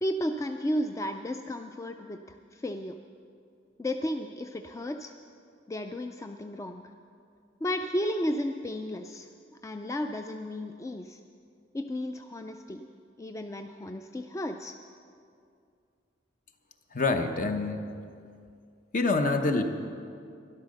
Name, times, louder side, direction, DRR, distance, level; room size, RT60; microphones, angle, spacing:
voice 1, 0.0-3.0 3.8-5.1 5.7-6.8 7.6-9.3 9.6-11.2 11.7-12.9 13.2-14.8, equal, 15° left, 6 dB, 0.3 m, -33 dB
voice 2, 16.9-17.9 18.9-19.6, left 3 dB, 45° left, 6 dB, 0.9 m, -26 dB
12.0 x 11.5 x 6.5 m, 2.4 s
head